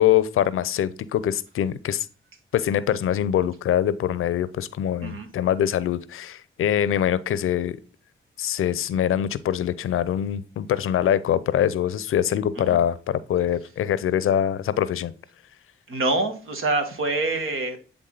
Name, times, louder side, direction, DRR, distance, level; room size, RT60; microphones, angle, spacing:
voice 1, 0.0-2.1 2.5-7.8 8.4-15.1, left 10 dB, 80° left, 0.5 m, -23 dB
voice 2, 15.9-17.8, right 2 dB, 75° right, 1.6 m, -26 dB
9.1 x 3.5 x 3.9 m
cardioid pair, 60°, 21 cm